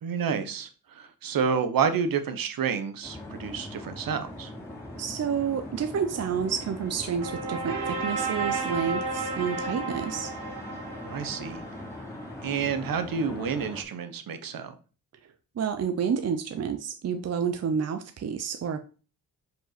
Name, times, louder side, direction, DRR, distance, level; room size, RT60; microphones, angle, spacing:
voice 1, 0.0-4.5 11.1-11.6 12.4-14.7, right 6 dB, 70° right, 9 dB, 1.2 m, -29 dB
sound 1, 3.0-13.8, left 1 dB, 5° left, 2.7 m, -41 dB
voice 2, 5.0-10.3 15.6-18.8, right 7 dB, 45° right, 8 dB, 0.7 m, -29 dB
sound 2, 6.5-12.4, right 3 dB, 90° right, 2.1 m, -33 dB
5.4 x 5.2 x 5.9 m, 0.36 s
wide cardioid pair, 140°, 36 cm